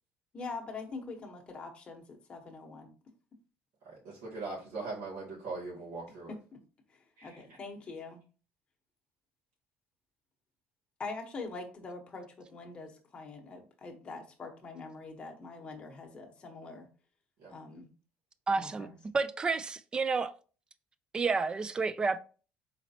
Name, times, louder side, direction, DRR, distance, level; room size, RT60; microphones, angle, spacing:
voice 1, 0.3-2.9 6.3-6.4 6.9-8.2 11.0-16.9 17.5-17.9 18.5-19.0, left 3 dB, 25° left, 1.0 m, -44 dB
voice 2, 3.8-6.4 7.2-7.4 17.4-17.5, right 3 dB, 90° right, 2.2 m, -40 dB
voice 3, 18.5-18.9 19.1-20.3 21.1-22.2, right 4 dB, 20° right, 0.3 m, -30 dB
4.3 x 4.1 x 2.8 m
cardioid pair, 160°, 5 cm